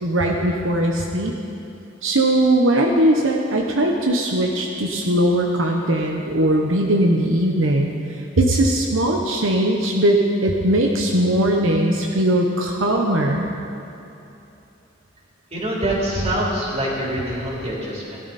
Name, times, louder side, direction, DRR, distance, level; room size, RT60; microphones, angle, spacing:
voice 1, 0.0-1.3 2.0-7.9 8.4-13.5, right 1 dB, 80° right, 0 dB, 1.1 m, -19 dB
voice 2, 15.5-18.2, right 1 dB, 35° right, -5 dB, 3.4 m, -24 dB
17.5 x 12.5 x 4.3 m, 2.8 s
head